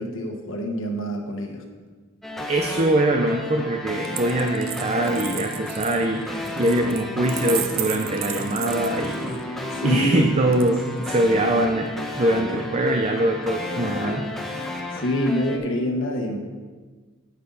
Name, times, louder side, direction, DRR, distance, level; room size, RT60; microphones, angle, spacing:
voice 1, 0.0-1.6 9.7-10.4 14.9-16.4, equal, 65° left, 2 dB, 1.4 m, -26 dB
sound 1, 2.2-15.6, left 1 dB, ahead, 0.9 m, -33 dB
voice 2, 2.5-11.9 12.2-14.3, right 1 dB, 35° right, 3 dB, 0.6 m, -23 dB
Coin (dropping), 4.0-9.4 10.5-11.2, right 11 dB, 80° right, 0.6 m, -34 dB
9.8 x 8.9 x 4.1 m, 1.4 s
head